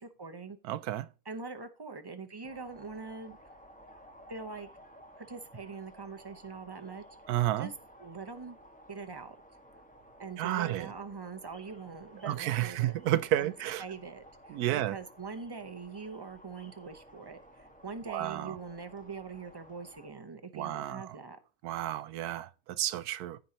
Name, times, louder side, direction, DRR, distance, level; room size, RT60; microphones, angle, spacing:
voice 1, 0.0-0.6 1.2-3.4 4.3-4.7 5.2-7.0 7.6-7.7 8.0-8.6 8.9-9.4 10.2-12.9 13.4-13.5 13.8-21.4, right 4 dB, 20° right, 0.7 m, -43 dB
voice 2, 0.7-1.1 7.3-7.7 10.4-10.9 12.2-13.8 14.5-15.0 18.1-18.6 20.5-21.0 21.6-23.4, right 13 dB, 80° right, 1.1 m, -31 dB
sound 1, 2.4-20.1, equal, 5° left, 1.5 m, -55 dB
15.0 x 5.2 x 2.9 m
omnidirectional pair, 1.6 m